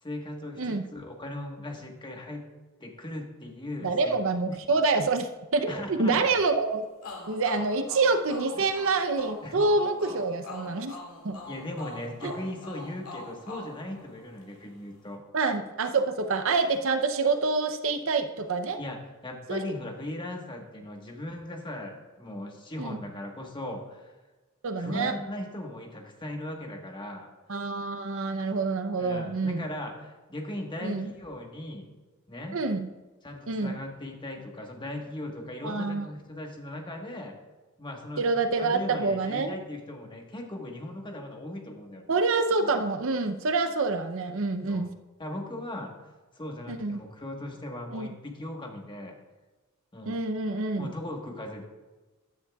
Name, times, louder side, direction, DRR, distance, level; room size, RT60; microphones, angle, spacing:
voice 1, 0.0-2.5 2.8-4.2 4.5-4.6 5.7-6.3 8.6-8.7 9.4-9.6 11.4-15.2 18.8-24.1 24.8-27.3 29.0-31.9 32.3-32.6 33.2-37.3 37.8-38.3 38.6-42.1 44.7-44.9 45.2-45.9 46.3-49.2 49.9-50.2 50.8-51.6, left 1 dB, 20° left, 2 dB, 1.4 m, -38 dB
voice 2, 3.8-6.9 7.3-11.0 11.2-11.4 12.2-12.3 15.3-18.8 19.5-19.6 22.8-23.0 24.6-25.1 27.5-29.6 30.8-31.1 32.5-32.9 33.5-33.8 35.6-36.1 38.2-39.5 42.1-44.9 46.7-47.0 47.9-48.1 50.1-50.9, right 3 dB, 65° right, 9 dB, 0.7 m, -27 dB
sound 1, 7.0-14.6, left 2 dB, 85° left, 2.2 m, -43 dB
15.0 x 10.0 x 2.4 m, 1.2 s
head